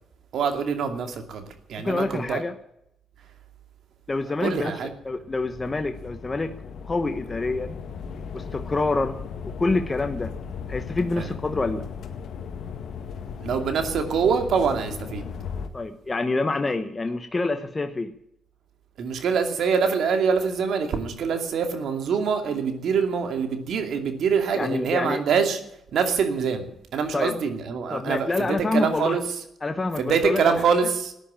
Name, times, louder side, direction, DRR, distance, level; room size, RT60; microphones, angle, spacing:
voice 1, 0.3-2.4 4.4-4.9 11.2-11.3 13.4-15.2 19.0-25.6 25.9-29.2 30.0-31.1, right 6 dB, 70° right, 6 dB, 2.5 m, -25 dB
voice 2, 1.8-2.5 4.1-4.7 5.0-6.5 6.8-7.7 8.3-9.2 9.6-10.3 10.7-11.8 15.7-18.1 24.5-25.2 27.1-27.3 27.9-29.2 29.6-30.6, left 3 dB, 25° left, 7 dB, 1.0 m, -26 dB
sound 1, 4.9-15.7, left 6 dB, 65° left, 1.9 m, -36 dB
14.0 x 10.5 x 8.8 m, 0.79 s
cardioid pair, 90°, 0 cm